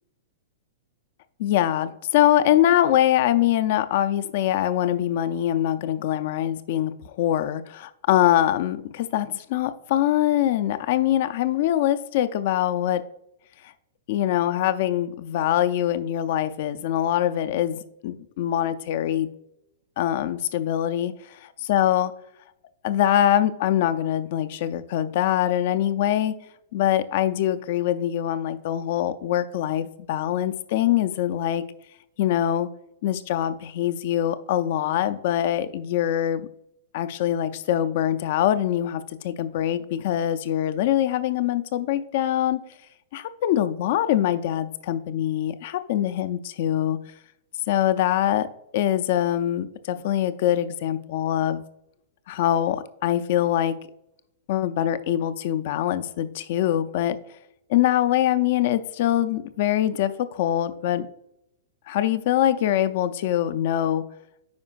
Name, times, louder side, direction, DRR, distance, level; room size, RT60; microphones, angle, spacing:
voice 1, 1.4-13.0 14.1-19.3 20.0-21.4 21.7-22.1 22.8-26.3 26.7-31.6 32.2-32.7 33.0-36.5 36.9-42.6 43.1-47.0 47.7-48.5 48.7-51.6 52.3-53.8 54.5-57.2 57.7-61.1 61.9-64.0, left 12 dB, 50° left, 12 dB, 0.5 m, -23 dB
9.5 x 5.0 x 2.4 m, 0.80 s
figure-of-eight pair, 105°, 0 cm